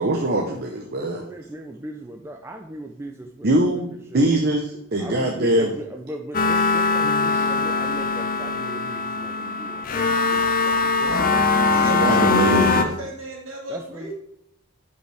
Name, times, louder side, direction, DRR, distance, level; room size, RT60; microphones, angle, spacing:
voice 1, 0.0-1.2 3.4-3.9 4.1-5.7 11.9-12.9, right 1 dB, 45° right, 1 dB, 0.8 m, -22 dB
voice 2, 0.9-4.2 5.0-11.4 12.1-12.9 13.7-14.1, right 1 dB, 10° right, 3 dB, 0.4 m, -38 dB
sound 1, 6.3-12.8, left 3 dB, 40° left, 0.6 m, -21 dB
Piano, 7.0-8.0, left 1 dB, 10° left, 0.8 m, -39 dB
voice 3, 11.7-14.1, right 1 dB, 60° right, -1 dB, 2.1 m, -35 dB
11.0 x 5.4 x 3.4 m, 0.71 s
head